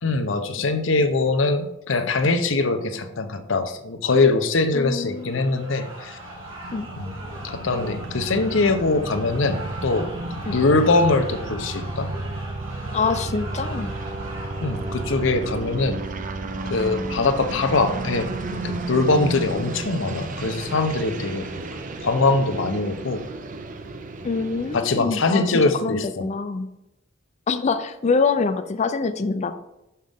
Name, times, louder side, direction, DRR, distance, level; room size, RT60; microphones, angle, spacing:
voice 1, 0.0-6.2 7.0-7.2 7.4-10.1 10.5-12.1 14.6-16.0 16.7-21.5 22.0-23.2 24.7-26.2, left 3 dB, 70° left, 7 dB, 0.7 m, -22 dB
voice 2, 4.7-5.6 6.7-6.9 10.5-10.6 12.9-13.9 24.2-26.7 27.5-29.6, left 4 dB, 35° left, 10 dB, 0.4 m, -25 dB
sound 1, 5.1-16.0, right 1 dB, 85° right, 2.1 m, -40 dB
sound 2, 6.0-24.8, right 2 dB, 40° right, 0.5 m, -33 dB
6.3 x 5.6 x 3.5 m, 0.89 s
head